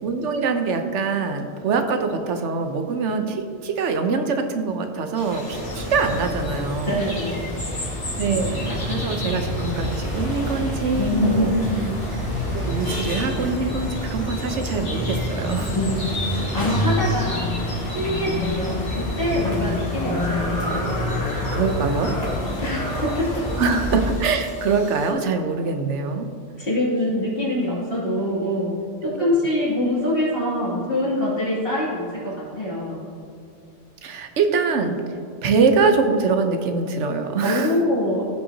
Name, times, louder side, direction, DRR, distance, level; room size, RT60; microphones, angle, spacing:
voice 1, 0.0-7.1 8.2-11.5 12.5-15.7 21.5-22.1 23.6-26.3 29.0-29.4 34.0-35.0 35.4-37.7, right 4 dB, 80° right, 6 dB, 1.1 m, -23 dB
sound 1, 5.1-25.1, left 1 dB, 75° left, 2.5 m, -37 dB
sound 2, 5.4-24.1, left 1 dB, 20° left, 1.5 m, -27 dB
voice 2, 6.9-7.5 11.0-11.8 15.7-20.9 22.6-23.4 26.6-28.7 29.0-33.0 37.4-38.2, left 1 dB, 50° left, -8 dB, 2.7 m, -24 dB
16.0 x 5.6 x 2.8 m, 2.5 s
omnidirectional pair, 1.2 m